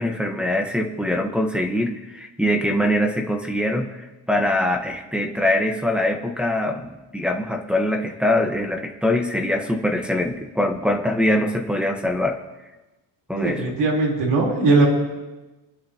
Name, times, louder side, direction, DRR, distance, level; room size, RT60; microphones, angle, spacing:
voice 1, 0.0-3.9 4.3-12.4 13.3-13.7, left 1 dB, ahead, 1 dB, 1.1 m, -23 dB
voice 2, 13.4-14.9, right 3 dB, 75° right, -2 dB, 3.9 m, -19 dB
24.0 x 11.0 x 2.9 m, 1.1 s
cardioid pair, 125°, 42 cm